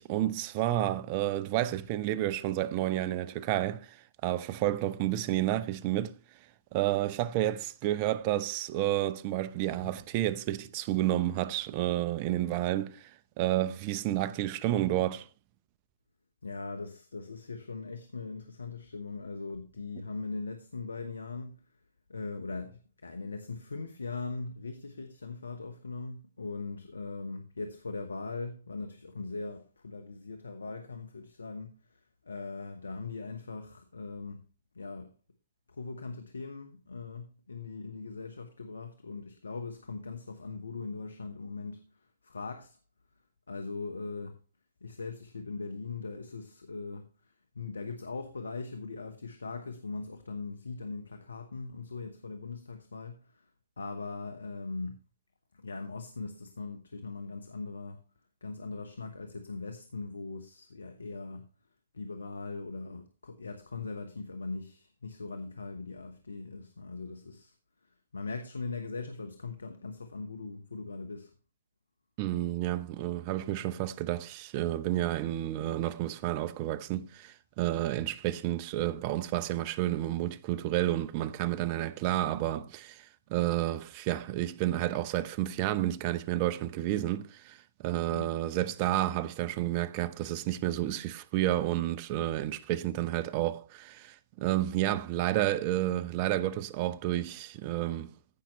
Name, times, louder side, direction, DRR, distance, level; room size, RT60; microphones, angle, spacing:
voice 1, 0.0-6.2 6.7-15.3 72.2-98.1, right 14 dB, 35° right, 0.7 m, -30 dB
voice 2, 16.4-21.6 22.1-34.4 34.7-35.1 35.7-42.8 43.5-44.4 44.8-53.5 53.8-55.0 55.5-58.0 58.4-61.5 61.9-67.5 67.8-71.3 88.1-88.3, left 3 dB, 85° left, 1.1 m, -40 dB
15.0 x 5.8 x 3.1 m
hypercardioid pair, 125°, 0 cm